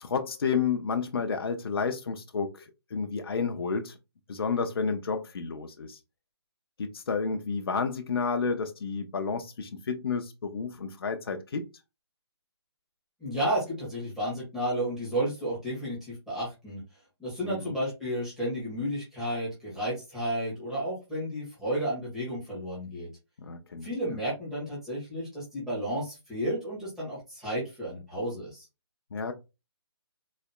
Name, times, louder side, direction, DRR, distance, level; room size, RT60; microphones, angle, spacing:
voice 1, 0.0-4.0 4.3-6.0 6.8-11.7 17.4-17.7 23.4-23.9 29.1-29.3, left 5 dB, 60° left, 0.6 m, -31 dB
voice 2, 13.2-16.8 17.2-23.1 23.8-28.6, right 1 dB, 5° right, 1.4 m, -32 dB
4.1 x 2.9 x 2.2 m
hypercardioid pair, 170°, 14 cm